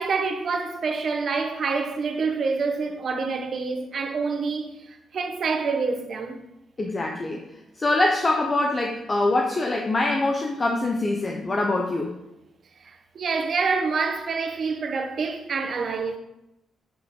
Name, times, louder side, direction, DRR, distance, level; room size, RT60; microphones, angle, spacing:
voice 1, 0.0-6.4 13.1-16.2, right 4 dB, 50° right, 1.1 m, -27 dB
voice 2, 6.8-7.4 7.8-12.1, left 2 dB, 25° left, 0.8 m, -24 dB
8.0 x 5.8 x 3.8 m
cardioid pair, 125°, 0 cm